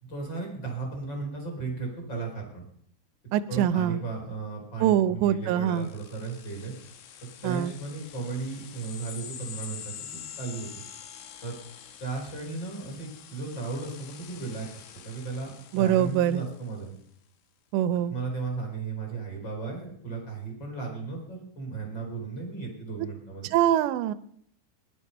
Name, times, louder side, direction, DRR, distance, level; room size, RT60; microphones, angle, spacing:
voice 1, 0.0-2.6 3.5-6.7 7.2-10.7 11.4-11.6 12.0-16.9 18.1-23.5, right 4 dB, 25° left, 0 dB, 4.9 m, -35 dB
voice 2, 3.3-4.0 4.8-5.9 7.4-7.7 15.7-16.4 17.7-18.1 23.0-23.1 23.5-24.1, right 11 dB, 80° right, 12 dB, 2.8 m, -24 dB
sound 1, 5.7-16.8, left 9 dB, 85° left, 3.9 m, -46 dB
19.0 x 11.5 x 5.5 m, 0.66 s
omnidirectional pair, 5.5 m